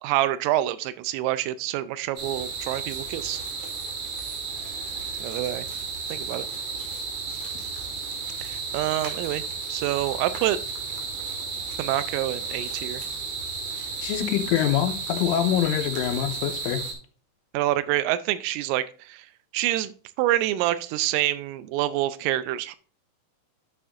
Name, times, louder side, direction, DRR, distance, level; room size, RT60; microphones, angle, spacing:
voice 1, 0.0-3.4 5.2-5.7 6.1-6.5 8.4-9.4 9.7-10.6 11.8-13.0 17.5-19.3 19.5-19.9 20.2-22.8, right 14 dB, 90° right, 3.2 m, -26 dB
sound 1, 2.2-16.9, right 4 dB, 60° right, 1.9 m, -33 dB
voice 2, 14.0-16.8, left 11 dB, 85° left, 3.2 m, -25 dB
11.5 x 7.0 x 2.5 m
omnidirectional pair, 5.7 m